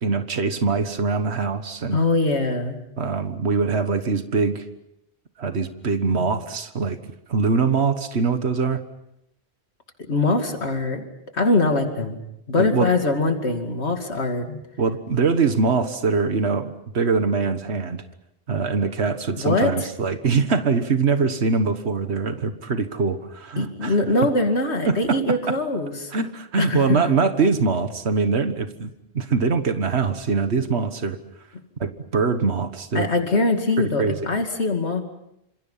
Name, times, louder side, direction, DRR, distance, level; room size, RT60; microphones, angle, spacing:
voice 1, 0.0-2.0 3.0-4.7 5.4-7.0 7.3-8.8 12.6-12.9 14.8-18.0 18.5-24.3 24.9-25.2 26.1-31.2 31.8-33.1 33.8-34.3, right 4 dB, 80° right, 9 dB, 1.7 m, -23 dB
voice 2, 1.9-2.8 6.1-6.3 10.1-11.0 11.3-12.2 12.5-14.6 19.4-19.9 23.6-26.1 26.6-27.2 32.9-35.0, left 2 dB, 90° left, 4 dB, 2.7 m, -22 dB
28.5 x 27.0 x 5.7 m, 0.81 s
omnidirectional pair, 1.1 m